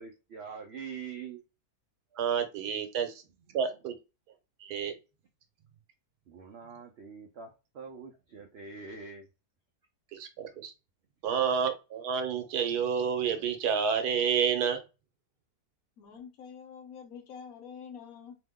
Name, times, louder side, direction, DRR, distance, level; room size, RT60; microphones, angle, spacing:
voice 1, 0.0-1.4 3.5-3.7 6.3-9.3, right 6 dB, 75° right, 0.6 m, -44 dB
voice 2, 2.2-3.2 3.5-3.9 4.6-5.0 10.1-10.7 11.2-14.8, right 7 dB, 90° right, 1.2 m, -29 dB
voice 3, 16.0-18.4, left 7 dB, 70° left, 1.1 m, -46 dB
2.9 x 2.1 x 3.5 m
omnidirectional pair, 1.6 m